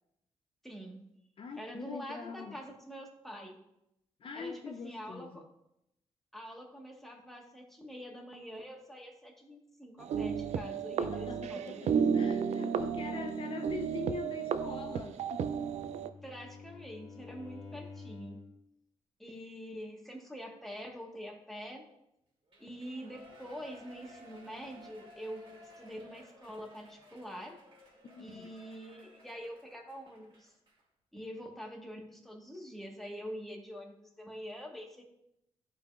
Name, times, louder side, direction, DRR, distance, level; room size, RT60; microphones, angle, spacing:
voice 1, 0.6-1.0 1.6-3.6 4.3-5.4 6.3-11.9 16.2-18.4 19.2-21.8 22.6-27.6 28.2-30.5 31.1-35.0, equal, ahead, 1.3 m, -45 dB
voice 2, 1.4-2.6 4.2-5.4 11.0-15.5 28.0-28.5, left 4 dB, 50° left, 0.5 m, -43 dB
sound 1, 10.0-16.1, right 7 dB, 75° right, 0.4 m, -33 dB
Bowed string instrument, 15.0-18.6, left 4 dB, 70° left, 1.3 m, -50 dB
Shout / Cheering, 22.5-30.8 31.2-31.3, equal, 50° right, 2.3 m, -57 dB
11.5 x 3.9 x 2.4 m
cardioid pair, 90°, 11 cm